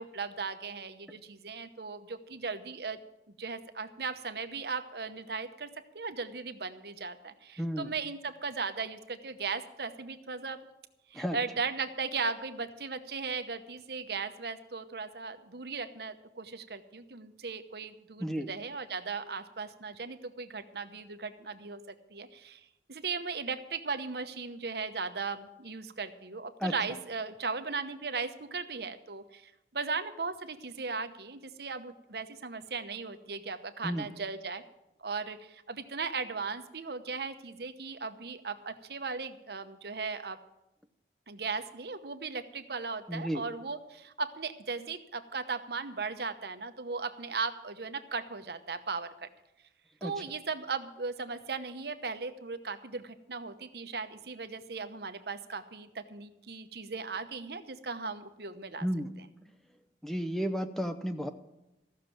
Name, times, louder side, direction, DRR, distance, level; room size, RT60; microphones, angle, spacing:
voice 1, 0.0-3.0 3.3-10.6 11.1-34.6 35.0-40.4 41.3-49.3 50.0-58.9, right 4 dB, 65° right, 9 dB, 0.9 m, -37 dB
voice 2, 7.6-7.9 11.1-11.4 18.2-18.5 26.6-26.7 33.8-34.1 43.1-43.4 50.0-50.1 58.8-59.1 60.0-61.3, equal, ahead, 7 dB, 0.6 m, -32 dB
15.0 x 6.6 x 9.0 m, 0.91 s
head